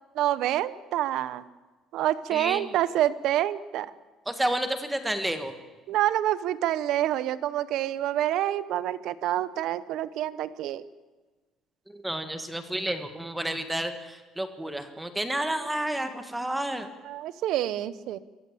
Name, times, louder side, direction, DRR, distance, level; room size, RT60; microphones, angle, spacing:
voice 1, 0.1-1.4 1.9-3.9 5.9-10.8 17.1-18.2, right 12 dB, 60° right, 16 dB, 1.0 m, -27 dB
voice 2, 2.3-2.7 4.2-5.5 11.9-16.9, right 1 dB, 5° right, 8 dB, 1.4 m, -30 dB
26.5 x 15.0 x 8.6 m, 1.3 s
cardioid pair, 175°, 0 cm